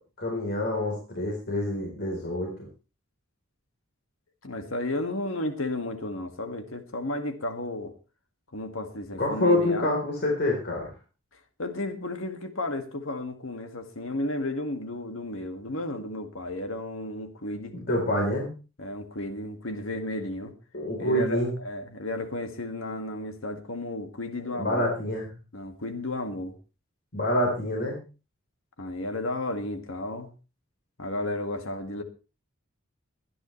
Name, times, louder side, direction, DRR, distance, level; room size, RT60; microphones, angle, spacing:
voice 1, 0.2-2.5 9.2-10.9 17.7-18.5 20.7-21.5 24.5-25.3 27.1-28.0, left 1 dB, 55° left, 3.9 m, -26 dB
voice 2, 4.4-7.9 8.5-9.9 11.6-17.8 18.8-20.5 21.0-24.9 25.5-26.6 28.8-30.3 31.0-32.0, left 1 dB, 75° left, 2.1 m, -33 dB
23.5 x 10.0 x 3.3 m
head